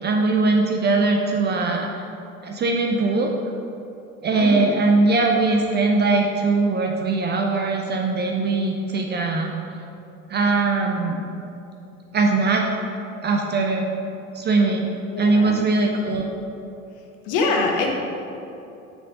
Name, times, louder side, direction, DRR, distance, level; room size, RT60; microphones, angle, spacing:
voice 1, 0.0-1.9 2.4-3.3 4.2-9.5 10.3-11.2 12.1-12.7 13.2-13.9 14.3-14.9 15.2-16.3, right 3 dB, 25° right, 2 dB, 0.7 m, -21 dB
voice 2, 4.3-4.7 15.1-15.6 17.3-17.9, left 3 dB, 50° left, 1 dB, 1.4 m, -24 dB
6.7 x 6.2 x 5.3 m, 2.7 s
figure-of-eight pair, 70°, 44 cm